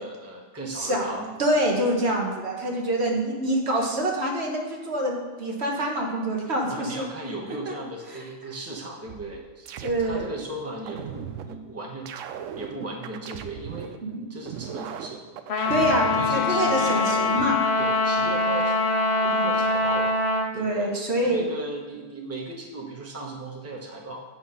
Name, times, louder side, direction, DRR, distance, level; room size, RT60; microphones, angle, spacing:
voice 1, 0.0-1.3 6.6-9.7 10.0-12.1 12.3-13.9 14.3-15.4 16.1-17.1 17.8-18.8 19.1-20.2 20.5-20.9 21.2-24.2, right 2 dB, 10° right, -1 dB, 1.1 m, -37 dB
voice 2, 0.7-7.1 7.7-7.8 9.8-10.3 14.0-14.3 15.7-17.6 19.3-19.5 20.6-21.5, right 1 dB, 60° right, 0 dB, 1.5 m, -26 dB
sound 1, 9.1-10.4 10.9-11.6 12.1-14.0 14.5-16.4 16.9-17.6, right 9 dB, 85° right, 1.0 m, -37 dB
Trumpet, 15.5-20.5, left 3 dB, 60° left, 1.0 m, -23 dB
8.5 x 5.7 x 5.5 m, 1.4 s
omnidirectional pair, 1.3 m